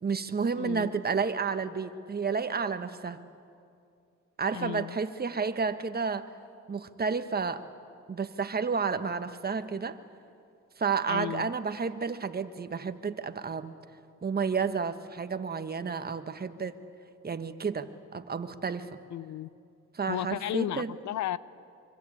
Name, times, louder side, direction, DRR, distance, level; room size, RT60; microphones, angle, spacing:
voice 1, 0.0-3.2 4.4-6.3 6.7-7.7 8.1-10.0 10.8-13.7 14.2-16.8 17.2-18.9 19.9-20.9, right 5 dB, 30° right, 10 dB, 1.3 m, -31 dB
voice 2, 0.5-1.0 4.5-5.0 11.1-11.5 19.1-19.5 20.1-21.4, left 12 dB, 70° left, 18 dB, 0.7 m, -34 dB
25.0 x 24.5 x 8.5 m, 2.4 s
cardioid pair, 90°, 30 cm